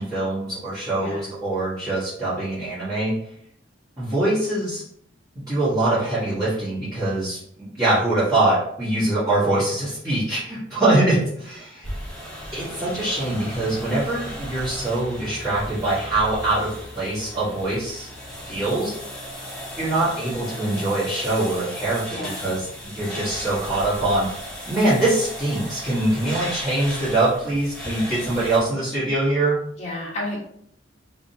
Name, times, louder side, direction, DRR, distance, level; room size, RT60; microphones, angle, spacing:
voice 1, 0.0-3.1 4.0-4.8 5.5-11.9 12.5-18.1 18.4-18.9 19.8-24.3 24.7-29.6, right 2 dB, 20° right, -14 dB, 1.5 m, -23 dB
voice 2, 0.9-1.2 22.1-22.4 29.8-30.4, left 1 dB, 35° left, -5 dB, 1.3 m, -31 dB
sound 1, 11.8-28.6, equal, 5° left, 1.1 m, -36 dB
3.6 x 3.0 x 2.8 m, 0.67 s
head